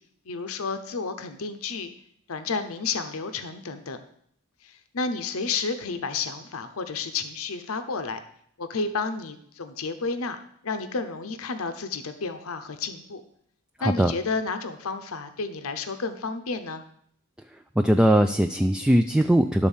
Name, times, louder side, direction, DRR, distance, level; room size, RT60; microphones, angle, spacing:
voice 1, 0.3-1.9 2.3-4.0 4.6-8.2 8.6-13.2 13.8-16.8, left 4 dB, 70° left, 9 dB, 0.7 m, -31 dB
voice 2, 13.8-14.1 17.8-19.7, equal, 5° right, 6 dB, 0.3 m, -20 dB
12.0 x 4.2 x 7.2 m, 0.68 s
head